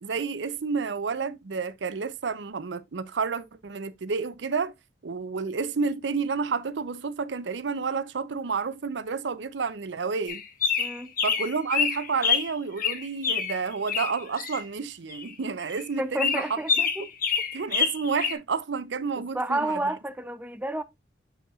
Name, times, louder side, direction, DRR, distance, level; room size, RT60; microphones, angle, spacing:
voice 1, 0.0-4.7 5.0-10.4 11.2-16.6 17.5-19.7, right 5 dB, 70° right, 0.6 m, -30 dB
sound 1, 10.3-12.5 12.8-14.6 15.1-15.3 15.6-15.9 16.2-18.3, left 7 dB, 50° left, 1.3 m, -27 dB
voice 2, 10.8-11.1 16.0-17.1 19.2-20.8, right 1 dB, 10° right, 0.5 m, -30 dB
7.0 x 5.6 x 2.4 m
head